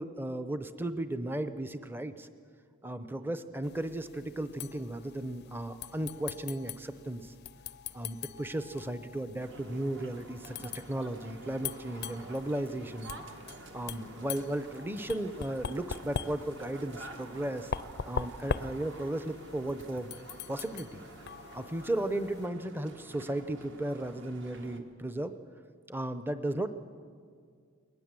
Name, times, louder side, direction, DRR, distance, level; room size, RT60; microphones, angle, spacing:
voice 1, 0.0-2.3 2.8-7.3 7.9-13.2 13.7-17.7 18.0-20.1 20.5-21.0 21.5-25.3 25.9-26.7, right 1 dB, 10° right, 10 dB, 0.7 m, -35 dB
sound 1, 3.6-22.5, left 6 dB, 50° left, 0.5 m, -42 dB
sound 2, 9.4-24.8, right 2 dB, 55° right, 1.6 m, -49 dB
21.0 x 19.5 x 7.5 m, 2.2 s
head